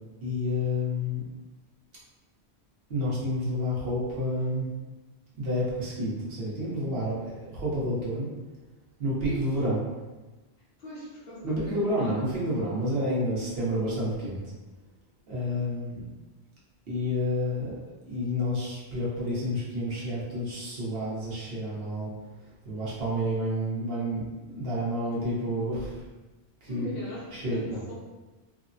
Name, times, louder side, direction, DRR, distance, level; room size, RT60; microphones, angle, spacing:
voice 1, 0.2-1.2 2.9-4.7 5.4-8.3 9.0-9.8 11.4-14.4 15.3-16.0 16.9-17.8 18.1-22.1 22.6-26.0 26.6-27.0 27.3-27.8, equal, 65° right, -7 dB, 1.1 m, -29 dB
voice 2, 10.8-12.2 26.7-28.0, equal, 65° left, -5 dB, 0.9 m, -41 dB
3.3 x 2.0 x 2.6 m, 1.2 s
omnidirectional pair, 1.1 m